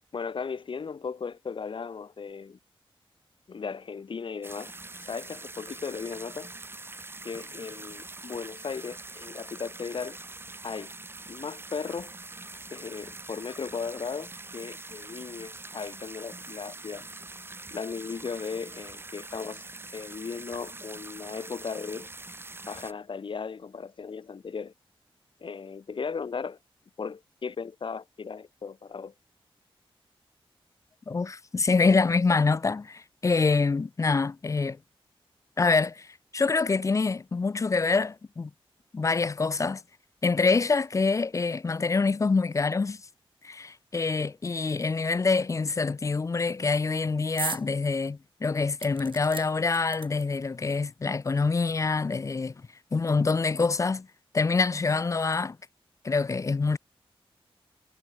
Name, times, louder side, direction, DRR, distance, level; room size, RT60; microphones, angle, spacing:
voice 1, 0.1-2.6 3.5-4.7 5.0-6.5 7.2-10.2 10.6-10.9 11.3-12.1 12.7-17.0 17.7-19.6 19.9-22.1 22.7-24.7 25.4-26.6 27.0-29.1, left 5 dB, 60° left, 3.4 m, -36 dB
sound 1, 4.4-22.9, right 2 dB, 25° right, 1.5 m, -44 dB
voice 2, 31.1-34.8 35.6-38.5 38.9-39.8 40.2-43.0 43.4-52.5 52.9-54.1 54.3-55.6 56.0-56.8, left 4 dB, 35° left, 0.6 m, -26 dB
sound 2, 47.4-47.7 48.1-48.2 48.8-50.5 51.3-51.4 51.7-51.8, right 5 dB, 60° right, 3.1 m, -37 dB
wide cardioid pair, 115°, 10 cm